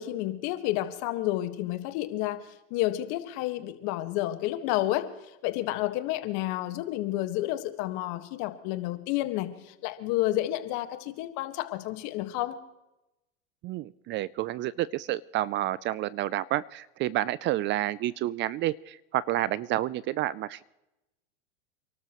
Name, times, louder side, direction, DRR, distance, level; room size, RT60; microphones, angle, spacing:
voice 1, 0.0-12.6, left 15 dB, 55° left, 9 dB, 1.7 m, -30 dB
voice 2, 13.6-20.6, right 14 dB, 35° right, 20 dB, 0.4 m, -29 dB
29.0 x 12.5 x 3.1 m, 0.94 s
supercardioid pair, 120°, 34 cm